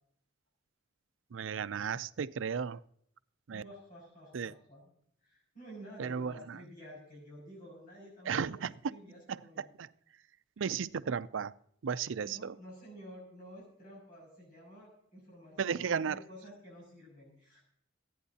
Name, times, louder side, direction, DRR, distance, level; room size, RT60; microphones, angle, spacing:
voice 1, 1.3-2.8 3.5-3.6 4.3-4.5 6.0-6.6 8.3-8.7 9.3-9.9 10.6-11.5 11.8-12.6 15.6-16.2, right 6 dB, 90° right, 0.5 m, -34 dB
voice 2, 3.5-4.9 5.2-9.7 12.2-17.6, equal, 45° left, 6.1 m, -51 dB
26.5 x 9.4 x 2.8 m
head